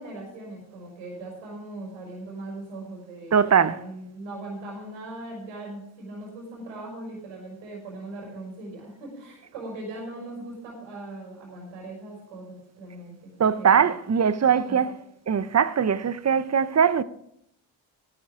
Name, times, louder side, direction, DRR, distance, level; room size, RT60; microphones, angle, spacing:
voice 1, 0.0-13.8 14.2-14.9, right 2 dB, 90° right, 5.3 m, -39 dB
voice 2, 3.3-3.8 13.4-14.9 15.3-17.0, right 7 dB, 35° right, 0.8 m, -21 dB
13.5 x 12.5 x 3.8 m
supercardioid pair, 55°, 48 cm